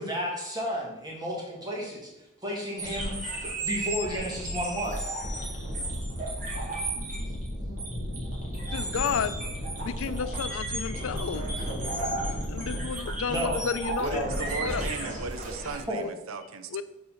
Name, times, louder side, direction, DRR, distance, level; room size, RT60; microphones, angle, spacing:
voice 1, 0.0-2.1 2.4-3.3 3.6-5.0 12.3-12.4 13.3-13.6 14.1-14.6 15.0-15.1 15.9-16.0, equal, 20° right, -2 dB, 1.8 m, -32 dB
sound 1, 2.8-15.8, right 1 dB, 40° right, 1.9 m, -34 dB
sound 2, 4.6-6.1, left 5 dB, 5° left, 1.3 m, -48 dB
sound 3, 5.2-12.9, left 1 dB, 45° left, 0.7 m, -38 dB
voice 2, 8.7-9.4 9.8-11.4 12.5-14.3 14.6-14.9 16.0-16.1 16.7-16.8, left 6 dB, 80° left, 13 dB, 0.4 m, -31 dB
voice 3, 14.0-16.8, right 4 dB, 90° right, 9 dB, 0.6 m, -37 dB
6.7 x 4.1 x 5.6 m, 0.92 s
head